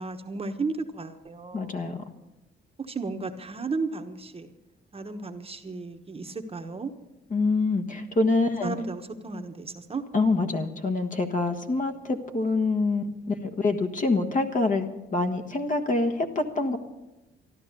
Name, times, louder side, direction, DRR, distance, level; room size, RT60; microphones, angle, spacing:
voice 1, 0.0-1.8 2.8-4.5 4.9-6.9 8.6-10.0, right 3 dB, 30° right, 6 dB, 1.1 m, -34 dB
voice 2, 1.5-2.0 7.3-8.7 10.1-16.8, left 3 dB, 40° left, 6 dB, 1.5 m, -26 dB
13.5 x 11.5 x 6.7 m, 1.0 s
cardioid pair, 90°, 20 cm